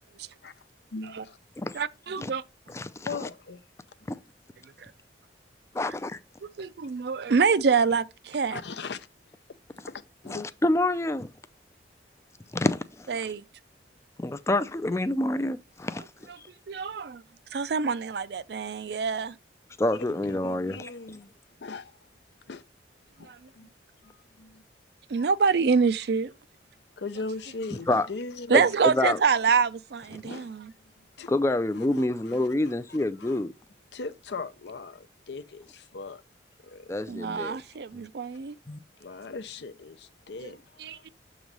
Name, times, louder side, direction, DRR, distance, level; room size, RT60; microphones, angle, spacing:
voice 1, 0.9-1.4 3.0-3.6 8.5-9.1 9.9-10.5 20.2-21.3 21.6-21.9 22.5-22.6 23.2-23.7 24.0-24.6 25.2-25.3 27.0-28.6 30.3-30.6 31.2-31.3 31.7-32.5 32.9-33.4 33.9-36.2 36.6-36.9 39.0-41.0, left 4 dB, 70° left, 0.6 m, -39 dB
voice 2, 1.7-2.4 6.4-8.6 13.1-13.4 16.7-17.2 17.5-19.3 23.3-23.4 25.1-26.3 28.5-30.7 37.1-38.5 40.4-40.5 40.8-41.1, right 5 dB, 60° right, 0.4 m, -26 dB
voice 3, 2.7-3.3 4.1-4.2 5.7-6.2 10.3-11.3 12.5-13.2 14.2-16.0 16.4-16.5 19.8-20.9 27.9-28.1 28.5-29.2 31.3-33.5 36.9-37.6 38.7-38.8, left 2 dB, 15° left, 0.4 m, -27 dB
7.1 x 3.1 x 5.2 m
head